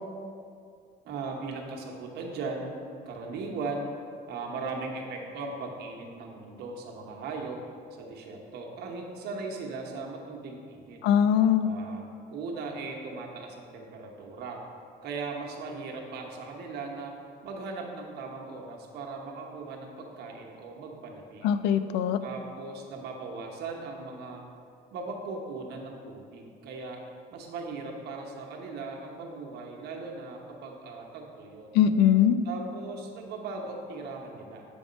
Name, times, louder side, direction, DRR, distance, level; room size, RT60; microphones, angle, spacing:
voice 1, 1.0-2.8 3.0-4.0 4.3-7.6 7.9-11.0 11.6-14.6 15.0-17.2 17.4-21.5 22.2-24.4 24.9-27.0 27.3-31.7 32.4-34.7, right 3 dB, 75° right, 1 dB, 1.1 m, -38 dB
voice 2, 11.0-11.7 21.4-22.2 31.7-32.4, left 9 dB, 85° left, 11 dB, 0.4 m, -21 dB
8.5 x 3.5 x 5.2 m, 2.4 s
cardioid pair, 110°, 17 cm